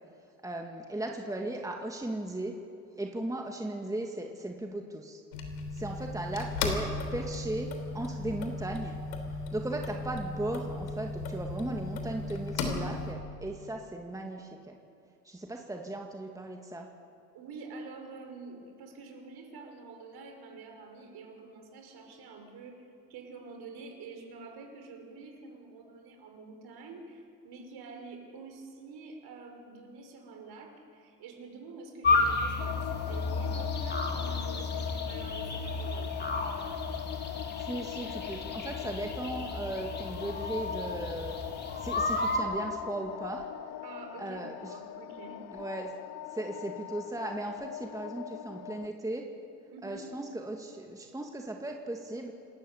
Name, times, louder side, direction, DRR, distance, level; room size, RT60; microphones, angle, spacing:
voice 1, 0.4-2.5 3.0-5.2 5.7-7.7 7.9-9.0 9.5-14.8 15.2-16.9 37.6-41.4 41.8-43.5 44.2-44.8 45.5-45.9 46.3-49.3 49.8-52.3, right 1 dB, 5° right, 2 dB, 2.2 m, -37 dB
sound 1, 5.3-13.1, left 3 dB, 75° left, 3.4 m, -36 dB
voice 2, 17.3-22.8 23.1-36.2 43.8-45.4 49.7-50.0, right 4 dB, 50° right, 4 dB, 5.7 m, -47 dB
sound 2, 32.0-42.4, left 3 dB, 20° left, 3.4 m, -32 dB
sound 3, 32.6-48.9, left 12 dB, 45° left, 1.0 m, -41 dB
28.0 x 13.5 x 8.5 m, 2.5 s
hypercardioid pair, 75°, 48 cm